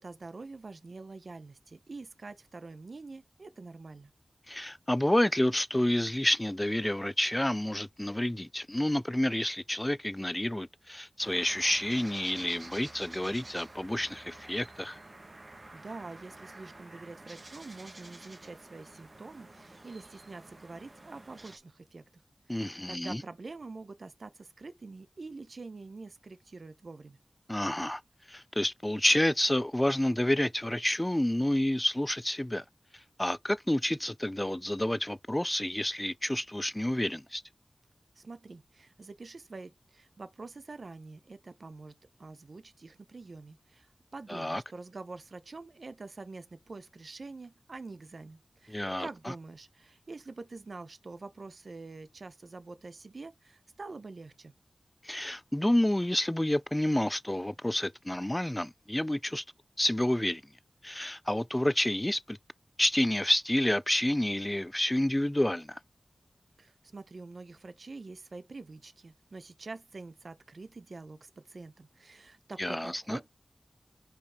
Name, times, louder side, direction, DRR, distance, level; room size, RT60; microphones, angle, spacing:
voice 1, 0.0-4.1 15.7-22.0 22.5-27.2 38.2-41.9 42.2-54.5 66.6-73.3, right 3 dB, 70° right, 0.8 m, -46 dB
voice 2, 4.5-15.0 22.5-23.2 27.5-28.0 28.3-32.6 33.2-37.4 44.3-44.6 48.7-49.3 55.0-59.4 59.8-60.4 60.8-62.4 62.8-65.8 72.6-73.2, left 1 dB, 15° left, 0.3 m, -29 dB
sound 1, 11.2-21.6, right 2 dB, 45° right, 1.4 m, -50 dB
5.2 x 4.6 x 4.8 m
wide cardioid pair, 55°, 0 cm